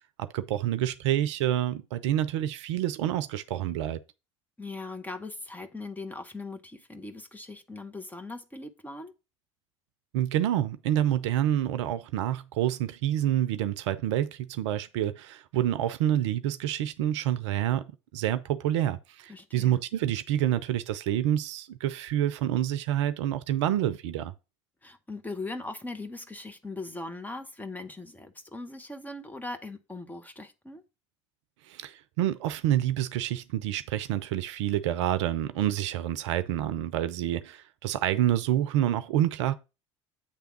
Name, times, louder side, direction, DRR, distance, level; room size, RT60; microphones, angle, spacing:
voice 1, 0.2-4.0 10.1-24.3 31.7-39.5, right 12 dB, 70° right, 0.6 m, -28 dB
voice 2, 4.6-9.1 19.3-19.8 24.8-30.8, left 2 dB, 10° left, 1.1 m, -40 dB
8.6 x 3.4 x 5.9 m
figure-of-eight pair, 65°, 16 cm